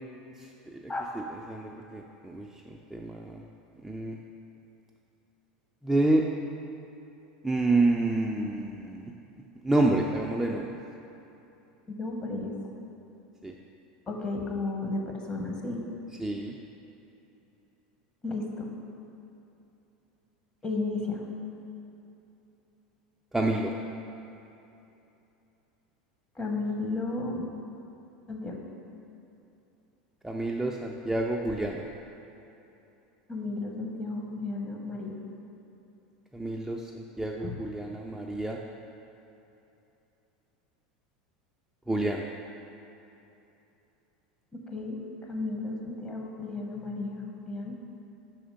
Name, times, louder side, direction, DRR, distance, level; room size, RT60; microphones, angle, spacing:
voice 1, 0.4-0.8 1.1-1.2 1.5-3.4 3.8-4.2 5.8-6.3 7.4-9.1 9.6-10.8 13.4-13.5 16.2-16.6 23.3-23.7 30.2-31.8 36.3-38.6 41.9-42.3, right 2 dB, 5° right, -1 dB, 0.4 m, -28 dB
voice 2, 11.9-12.5 14.1-15.8 18.2-18.7 20.6-21.3 26.4-27.5 28.3-28.6 33.3-35.2 37.4-37.6 44.7-45.0 45.3-47.8, left 3 dB, 25° left, 1 dB, 0.9 m, -33 dB
4.9 x 4.3 x 5.1 m, 2.9 s
hypercardioid pair, 95°, 4 cm